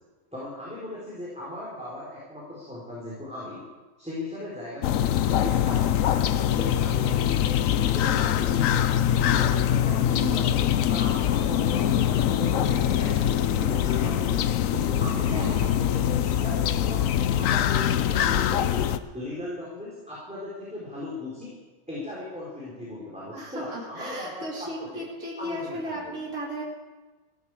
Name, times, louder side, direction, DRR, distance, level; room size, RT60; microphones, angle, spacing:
voice 1, 0.3-3.6 4.0-6.2 6.6-8.6 9.3-14.3 14.7-21.5 21.9-25.0 25.4-26.2, left 2 dB, 5° right, -7 dB, 3.9 m, -38 dB
sound 1, 4.8-19.0, left 10 dB, 80° left, 1.0 m, -23 dB
voice 2, 10.1-10.6 15.3-15.9 23.3-26.6, equal, 70° right, -4 dB, 3.2 m, -35 dB
16.0 x 13.5 x 4.8 m, 1.2 s
omnidirectional pair, 1.4 m